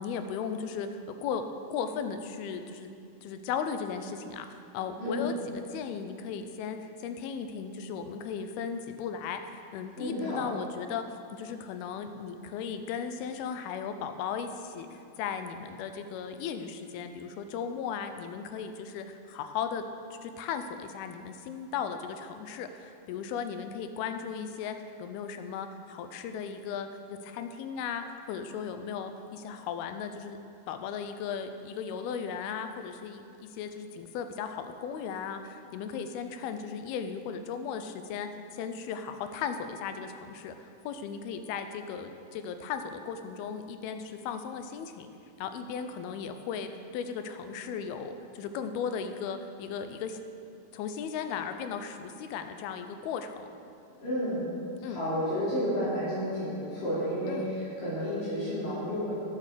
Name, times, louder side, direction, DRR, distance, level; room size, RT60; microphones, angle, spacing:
voice 1, 0.0-1.5 1.7-2.9 3.2-4.5 4.7-11.1 11.3-19.8 20.2-30.4 30.7-45.1 45.4-50.2 50.7-53.4 54.8-55.0 57.3-57.5, left 7 dB, 85° left, 8 dB, 2.5 m, -36 dB
voice 2, 10.0-10.5 54.0-54.5 54.8-59.1, equal, 60° left, -12 dB, 4.6 m, -31 dB
11.5 x 7.4 x 6.6 m, 2.5 s
omnidirectional pair, 4.4 m